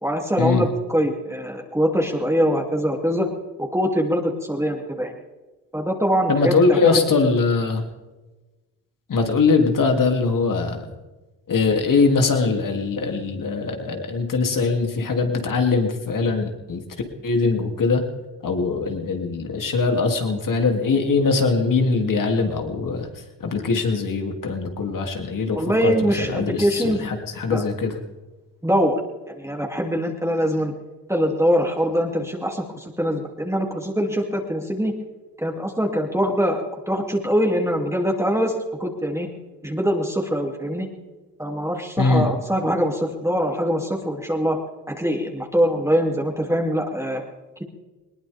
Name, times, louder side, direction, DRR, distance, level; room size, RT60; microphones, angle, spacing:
voice 1, 0.0-3.3 3.6-5.1 5.7-7.0 25.6-27.1 27.5-27.6 28.6-29.0 29.4-30.7 31.1-34.9 35.4-39.3 39.6-40.9 41.4-44.6 44.9-47.2, equal, 10° right, 0 dB, 2.8 m, -23 dB
voice 2, 6.3-7.8 9.1-10.8 11.5-16.8 17.2-18.0 18.4-23.1 23.4-28.0 42.0-42.3, left 4 dB, 60° left, 4 dB, 3.0 m, -21 dB
21.0 x 19.5 x 3.6 m, 1.2 s
supercardioid pair, 60°, 36 cm